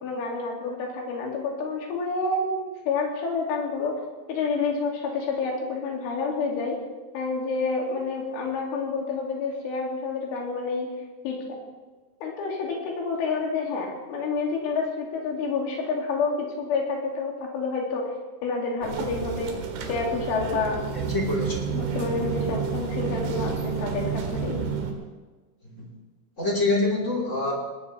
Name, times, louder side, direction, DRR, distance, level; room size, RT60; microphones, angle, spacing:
voice 1, 0.0-4.0 4.3-6.8 7.1-10.9 11.3-11.6 12.2-18.1 18.4-19.5 19.9-20.8 21.7-24.6, left 4 dB, 75° left, -1 dB, 5.2 m, -28 dB
sound 1, 18.8-24.9, right 6 dB, 65° right, 3.5 m, -30 dB
voice 2, 20.9-21.7 25.6-25.9 26.4-27.5, left 2 dB, 25° left, -1 dB, 1.5 m, -26 dB
20.0 x 18.5 x 3.5 m, 1.3 s
omnidirectional pair, 5.7 m